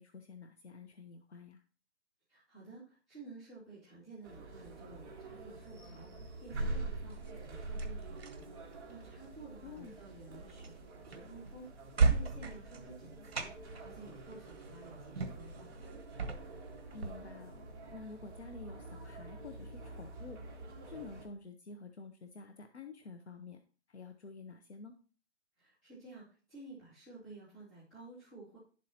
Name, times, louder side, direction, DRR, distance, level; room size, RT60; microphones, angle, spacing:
voice 1, 0.0-1.6 9.6-10.0 16.9-17.6 17.9-20.4 20.9-23.6 23.9-24.9, left 4 dB, 65° left, 7 dB, 1.0 m, -49 dB
voice 2, 2.3-15.7 25.6-28.6, right 3 dB, 15° left, -10 dB, 2.4 m, -53 dB
sound 1, 4.2-21.3, right 2 dB, 20° right, 1.6 m, -46 dB
sound 2, 7.1-17.1, right 4 dB, 55° right, 1.4 m, -37 dB
11.0 x 7.6 x 2.9 m, 0.39 s
hypercardioid pair, 180°, 36 cm